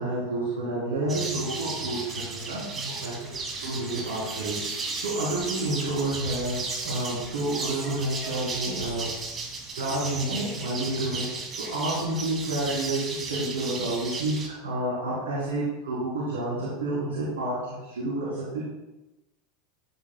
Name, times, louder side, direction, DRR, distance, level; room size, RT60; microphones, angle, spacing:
voice 1, 0.0-2.0 2.3-3.2 3.6-4.6 5.0-9.0 9.7-18.6, right 1 dB, 75° right, -7 dB, 3.3 m, -29 dB
sound 1, 1.1-14.5, right 3 dB, 30° right, 2.4 m, -35 dB
13.5 x 8.7 x 2.3 m, 1.0 s
figure-of-eight pair, 85°, 0 cm